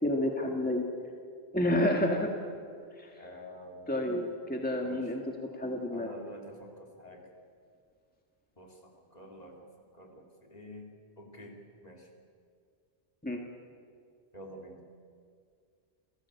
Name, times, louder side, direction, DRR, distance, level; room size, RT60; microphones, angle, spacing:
voice 1, 0.0-0.8 1.5-2.3 3.0-3.1 3.9-5.2 5.5-6.1 13.2-13.4, left 1 dB, 10° left, 1 dB, 1.8 m, -29 dB
voice 2, 3.2-4.1 4.8-5.1 5.9-7.3 8.6-9.7 9.9-10.9 11.2-12.1 14.3-14.8, equal, 40° left, 1 dB, 3.3 m, -48 dB
28.5 x 16.0 x 8.4 m, 2.2 s
omnidirectional pair, 1.1 m